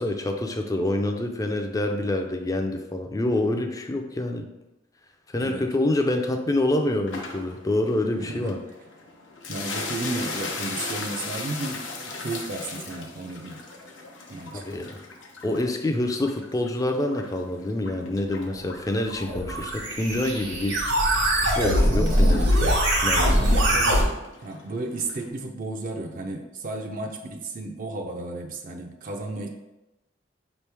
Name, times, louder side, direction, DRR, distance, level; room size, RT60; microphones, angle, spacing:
voice 1, 0.0-4.5 5.3-8.6 14.5-15.0 15.4-20.8 21.4-22.8 23.0-23.6, left 1 dB, 20° left, 5 dB, 0.4 m, -27 dB
sound 1, 7.1-25.3, left 3 dB, 80° left, 0.8 m, -39 dB
voice 2, 8.2-8.5 9.5-13.6 14.3-14.6 23.7-23.9 24.4-29.5, right 2 dB, 45° right, 2 dB, 0.5 m, -33 dB
sound 2, 19.1-24.0, equal, 75° right, 1.3 m, -22 dB
5.1 x 3.1 x 3.3 m, 0.97 s
head